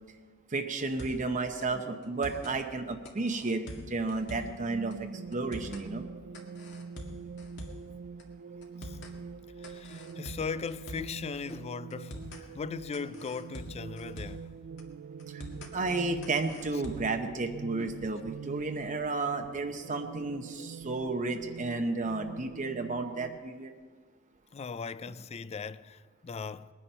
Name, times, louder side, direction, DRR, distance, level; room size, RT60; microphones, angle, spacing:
voice 1, 0.5-6.1 15.3-15.4 15.7-23.7, right 3 dB, 35° right, 0.8 m, -32 dB
sound 1, 0.8-1.3 1.6-1.7 2.0-2.6 3.1-4.6 4.9-5.0 5.3-5.9 6.3-7.9 8.2-8.3 8.6-9.2 9.6-11.2 11.5-11.6 11.9-12.4 12.9-14.5 14.8-14.9 15.2-15.7 16.2-17.2, left 1 dB, 60° left, 2.0 m, -44 dB
sound 2, 4.2-23.4, right 6 dB, 60° right, 0.4 m, -45 dB
voice 2, 9.6-14.5 24.5-26.7, left 5 dB, 30° left, 0.4 m, -38 dB
20.5 x 10.0 x 5.5 m
head